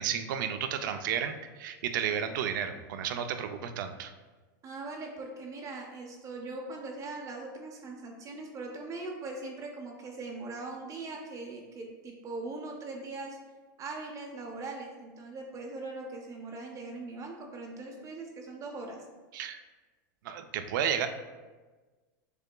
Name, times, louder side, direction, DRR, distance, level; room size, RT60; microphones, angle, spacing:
voice 1, 0.0-4.1 19.3-19.6 20.2-21.1, right 8 dB, 75° right, 8 dB, 0.5 m, -32 dB
voice 2, 4.6-13.4 13.8-19.1, right 3 dB, 30° right, 1 dB, 0.6 m, -40 dB
6.7 x 3.5 x 2.2 m, 1.3 s
supercardioid pair, 120°, 11 cm